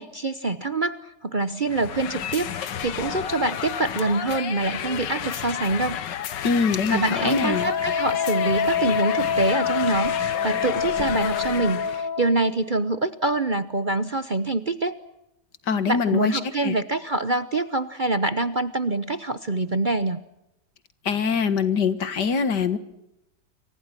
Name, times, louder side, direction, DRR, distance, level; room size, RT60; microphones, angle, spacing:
voice 1, 0.0-6.0 6.9-14.9 15.9-20.2, right 2 dB, 35° right, 13 dB, 0.9 m, -25 dB
sound 1, 1.7-12.1, left 9 dB, 90° left, 1.8 m, -32 dB
voice 2, 6.4-7.7 15.7-16.8 21.1-22.8, left 5 dB, 75° left, 12 dB, 2.2 m, -23 dB
Wind instrument woodwind instrument, 7.1-12.4, left 7 dB, 50° left, 2.7 m, -26 dB
30.0 x 24.5 x 6.0 m, 0.86 s
omnidirectional pair, 1.9 m